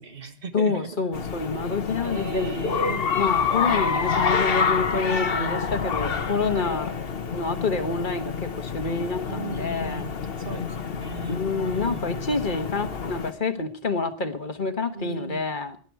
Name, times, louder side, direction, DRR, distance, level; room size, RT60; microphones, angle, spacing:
voice 1, 0.0-1.0 2.0-3.1 5.0-5.6 9.3-12.2 14.9-15.4, right 5 dB, 60° right, 7 dB, 1.7 m, -37 dB
voice 2, 0.5-2.6 3.1-6.9 7.3-10.1 11.3-15.8, left 4 dB, 50° left, 7 dB, 1.5 m, -27 dB
sound 1, 1.1-13.3, left 6 dB, 65° left, 1.3 m, -28 dB
19.0 x 11.0 x 4.7 m, 0.42 s
omnidirectional pair, 1.1 m